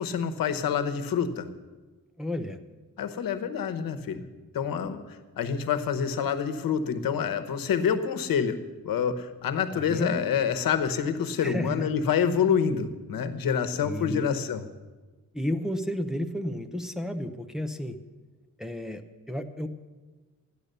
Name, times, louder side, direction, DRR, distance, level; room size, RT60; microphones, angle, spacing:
voice 1, 0.0-1.5 3.0-4.2 4.5-5.0 5.4-8.6 8.8-14.6, left 7 dB, 90° left, 8 dB, 1.0 m, -27 dB
voice 2, 2.2-2.6 9.7-10.2 11.4-11.9 13.8-14.3 15.3-18.0 18.6-19.0 19.3-19.7, left 1 dB, ahead, 5 dB, 0.6 m, -32 dB
13.5 x 10.0 x 6.7 m, 1.3 s
wide cardioid pair, 150°, 34 cm